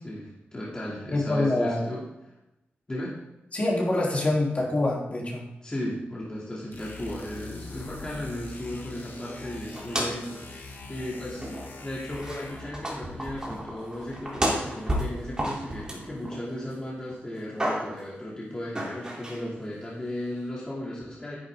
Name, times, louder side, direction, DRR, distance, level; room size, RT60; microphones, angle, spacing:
voice 1, 0.0-2.1 2.9-3.2 5.6-21.4, left 1 dB, 20° left, -6 dB, 2.8 m, -36 dB
voice 2, 1.1-1.8 3.5-5.4, left 2 dB, 35° left, -3 dB, 3.4 m, -25 dB
sound 1, 6.7-12.9, left 3 dB, 60° left, 1.8 m, -42 dB
sound 2, 9.7-10.4 10.7-10.8 11.4-11.8 12.1-16.7 17.1-18.1 18.7-19.4, right 1 dB, 20° right, 3.5 m, -32 dB
13.0 x 11.0 x 3.8 m, 0.92 s
wide cardioid pair, 155°, 4 cm